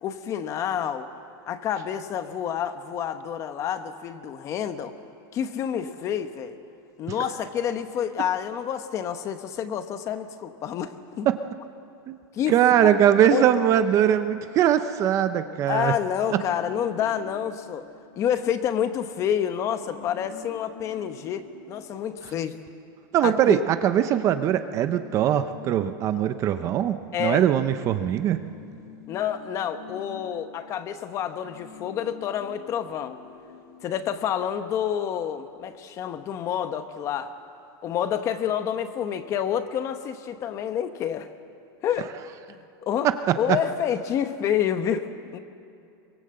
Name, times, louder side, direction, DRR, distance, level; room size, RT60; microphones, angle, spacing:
voice 1, 0.0-1.1 1.5-4.9 5.3-6.6 7.0-11.3 12.3-13.0 13.3-13.5 15.7-17.9 18.2-22.6 23.2-23.6 27.1-27.4 29.1-33.2 33.8-37.3 37.8-41.3 41.8-42.1 42.8-45.4, left 9 dB, 25° left, 10 dB, 0.9 m, -28 dB
voice 2, 12.5-15.9 16.3-16.4 23.1-28.4 43.0-43.1 43.5-43.6, right 10 dB, 25° right, 10 dB, 0.6 m, -21 dB
sound 1, 16.2-18.8 19.1-19.2 19.5-22.9 23.4-27.0 27.3-34.9, left 5 dB, 40° left, 3.8 m, -47 dB
24.0 x 22.5 x 7.7 m, 2.5 s
supercardioid pair, 175°, 12 cm